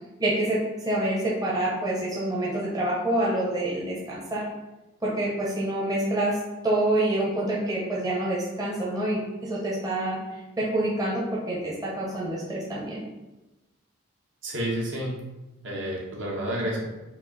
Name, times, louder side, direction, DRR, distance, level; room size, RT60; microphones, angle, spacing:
voice 1, 0.2-4.4 5.0-6.4 6.6-10.2 10.6-13.0, right 1 dB, 20° right, -5 dB, 0.8 m, -27 dB
voice 2, 14.4-15.1 15.6-16.9, right 1 dB, 60° right, -3 dB, 1.2 m, -30 dB
5.3 x 2.6 x 4.0 m, 1.0 s
head